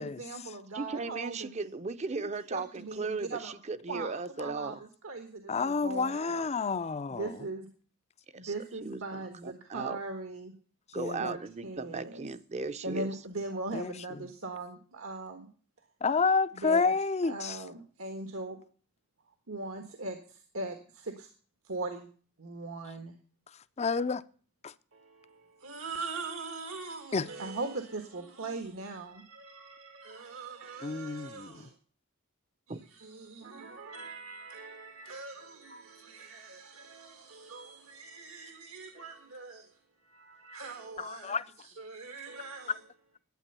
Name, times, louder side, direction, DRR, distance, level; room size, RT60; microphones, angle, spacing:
voice 1, 0.0-1.7 2.2-3.5 3.9-4.1 4.4-6.5 7.1-7.7 8.4-10.5 11.2-12.3 12.8-15.5 16.5-16.9 17.2-18.6 19.5-21.3 21.6-22.1 22.4-23.1 24.9-31.7 32.7-42.8, right 3 dB, 75° right, 1.5 m, -40 dB
voice 2, 0.7-4.8 8.4-8.5 8.8-10.0 10.9-13.1 32.7-32.8, right 4 dB, 35° right, 0.7 m, -37 dB
voice 3, 5.5-7.3 11.0-11.4 13.7-13.9 16.0-17.6 23.8-24.2 24.6-24.7 27.1-27.3 30.8-31.7 41.0-41.4, left 4 dB, 30° left, 0.5 m, -29 dB
11.5 x 8.8 x 6.8 m
head